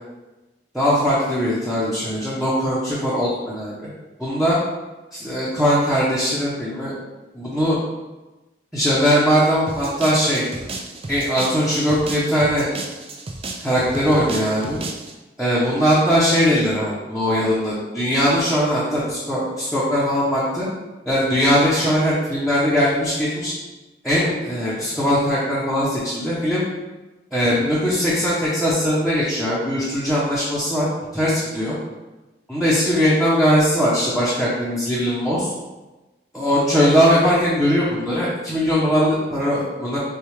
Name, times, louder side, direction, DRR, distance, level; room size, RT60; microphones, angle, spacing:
voice 1, 0.7-3.9 4.2-4.6 5.1-6.9 7.3-7.8 8.7-10.4 11.1-12.7 13.6-14.8 15.4-20.7 21.0-23.5 24.0-26.6 27.3-30.9 31.1-31.8 32.5-35.5 36.3-40.0, equal, ahead, -9 dB, 0.8 m, -20 dB
sound 1, 9.7-15.1, right 3 dB, 35° right, 0.5 m, -33 dB
6.5 x 2.4 x 3.2 m, 1.1 s
head